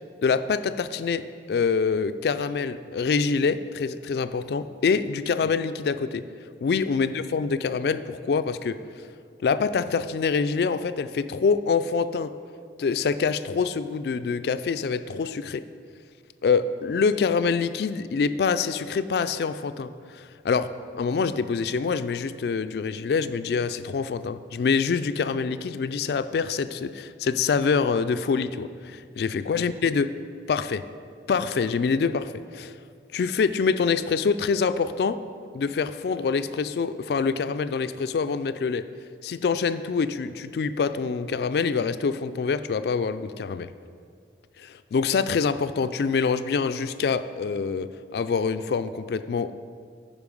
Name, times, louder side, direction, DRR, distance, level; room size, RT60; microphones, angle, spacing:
voice 1, 0.2-6.2 6.6-8.8 9.4-12.3 12.8-15.6 16.4-20.7 20.9-30.1 30.5-30.8 31.3-32.8 33.1-35.2 35.5-38.9 39.2-43.7 44.6-49.5, left 5 dB, 65° left, 12 dB, 0.3 m, -25 dB
9.7 x 5.1 x 5.3 m, 2.2 s
head